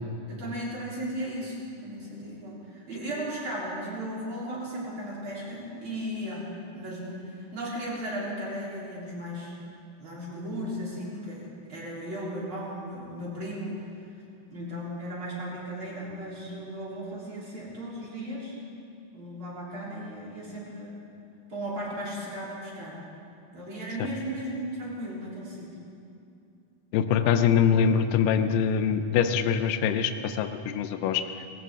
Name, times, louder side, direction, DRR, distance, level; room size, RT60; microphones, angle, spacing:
voice 1, 0.3-9.5 10.0-13.8 14.5-18.6 19.1-21.0 21.5-23.0 23.5-25.7, equal, 35° right, -6 dB, 4.2 m, -36 dB
voice 2, 26.9-31.2, left 7 dB, 80° left, 9 dB, 2.3 m, -24 dB
21.0 x 15.0 x 3.7 m, 2.6 s
omnidirectional pair, 3.9 m